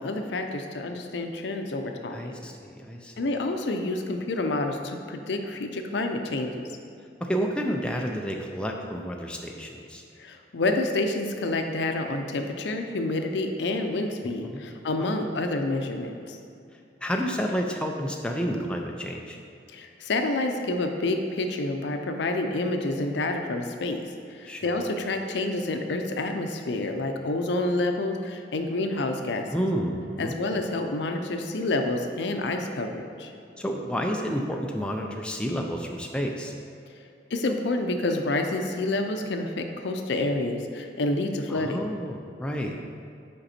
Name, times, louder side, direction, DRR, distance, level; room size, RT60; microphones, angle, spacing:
voice 1, 0.0-2.4 3.2-6.7 10.2-16.4 19.7-24.0 24.3-29.7 30.2-33.3 37.3-41.8, left 2 dB, 75° left, 5 dB, 0.5 m, -28 dB
voice 2, 2.1-3.1 7.2-10.0 14.4-14.6 15.0-15.1 17.0-19.4 24.5-24.6 29.5-30.4 33.6-36.5 41.5-42.8, equal, 5° left, 1 dB, 0.3 m, -30 dB
5.3 x 5.2 x 4.2 m, 2.5 s
head